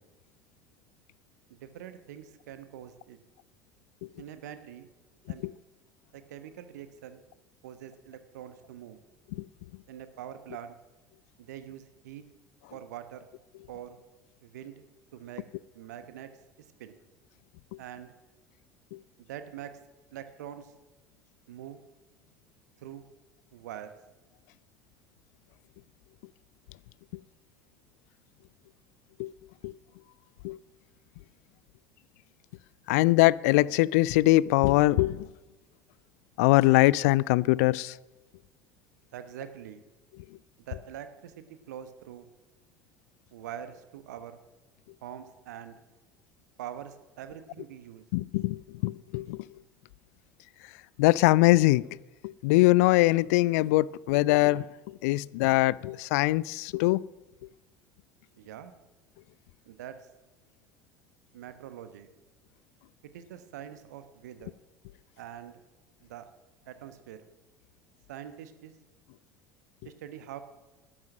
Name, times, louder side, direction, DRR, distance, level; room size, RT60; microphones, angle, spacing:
voice 1, 1.5-3.2 4.2-4.9 5.3-5.5 6.1-7.2 7.6-9.0 9.9-10.8 11.4-12.2 12.7-13.2 13.7-14.0 14.4-14.8 15.1-15.4 15.7-16.3 16.6-17.0 17.8-18.1 19.2-19.7 20.1-20.7 21.5-21.8 22.8-23.0 23.5-23.9 39.1-39.8 40.7-42.3 43.3-44.4 45.0-45.8 46.6-48.0 58.4-58.7 59.6-60.1 61.3-62.1 63.0-64.5 65.2-65.6 66.0-66.3 66.7-67.2 68.1-68.7 69.8-70.4, right 10 dB, 65° right, 10 dB, 1.1 m, -44 dB
voice 2, 32.9-35.3 36.4-37.9 48.1-49.4 51.0-51.8 52.2-54.7 55.0-57.0, left 19 dB, 55° left, 23 dB, 0.3 m, -22 dB
12.5 x 10.5 x 6.2 m, 1.1 s
figure-of-eight pair, 65°, 10 cm